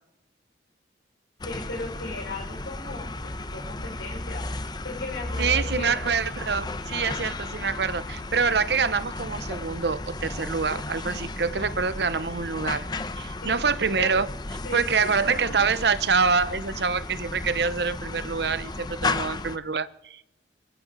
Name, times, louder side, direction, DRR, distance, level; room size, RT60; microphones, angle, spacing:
voice 1, 1.4-6.0 13.4-13.5 14.0-14.2 14.6-15.2, left 2 dB, 90° left, 5.8 m, -37 dB
sound 1, 1.4-19.6, left 2 dB, 25° left, 0.7 m, -34 dB
voice 2, 5.4-12.9 13.2-14.3 14.7-20.2, right 5 dB, 70° right, 0.8 m, -26 dB
24.0 x 14.0 x 4.0 m
head